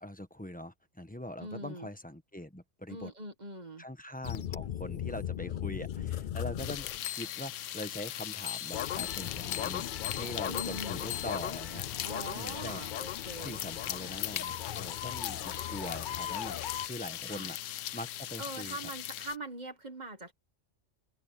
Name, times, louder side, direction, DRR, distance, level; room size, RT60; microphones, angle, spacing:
voice 1, 0.0-3.1 3.8-9.9 10.1-11.9 12.4-12.8 13.4-16.6 16.8-18.8, left 1 dB, 5° left, 1.3 m, -42 dB
voice 2, 1.4-1.9 2.9-3.8 10.5-11.0 12.0-13.6 17.2-17.5 18.4-20.3, right 1 dB, 35° right, 1.8 m, -42 dB
sound 1, 4.2-7.6 8.5-16.9, left 10 dB, 55° left, 0.6 m, -38 dB
sound 2, 6.6-19.4, left 13 dB, 85° left, 1.0 m, -40 dB
open air
omnidirectional pair, 1.3 m